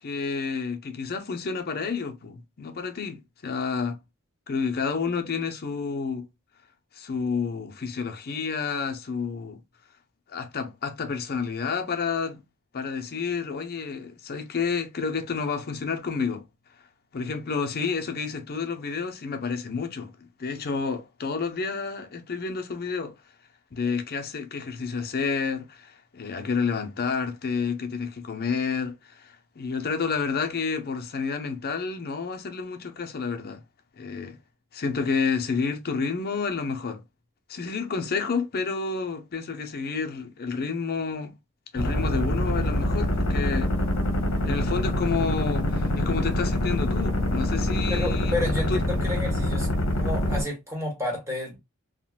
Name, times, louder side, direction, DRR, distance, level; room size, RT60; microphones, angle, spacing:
voice 1, 0.0-4.0 4.5-6.3 6.9-9.6 10.3-12.4 12.7-16.4 17.1-23.2 23.7-33.6 34.0-34.4 34.7-37.0 37.5-41.3 41.7-43.7 44.4-48.4 48.7-48.8, left 5 dB, 45° left, 0.6 m, -30 dB
sound 1, 41.8-50.4, left 1 dB, 60° left, 1.0 m, -25 dB
voice 2, 47.9-49.7 50.0-51.6, left 1 dB, 15° right, 1.4 m, -30 dB
3.6 x 2.2 x 2.4 m
head